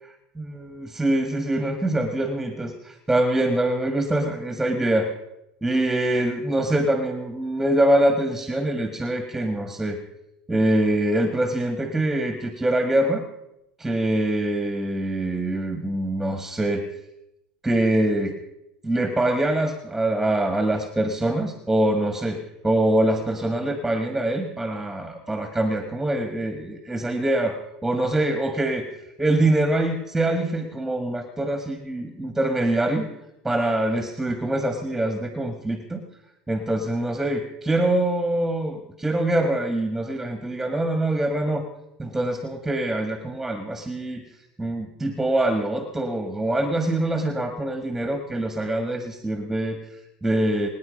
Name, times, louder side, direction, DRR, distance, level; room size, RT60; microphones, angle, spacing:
voice 1, 0.4-5.1 5.6-10.0 10.5-13.2 13.8-16.8 17.6-18.3 18.8-22.4 22.6-28.9 29.2-33.1 33.4-36.0 36.5-41.6 42.0-44.2 44.6-50.7, right 1 dB, 5° right, 6 dB, 1.8 m, -24 dB
24.5 x 9.6 x 5.3 m, 0.86 s
supercardioid pair, 110°, 3 cm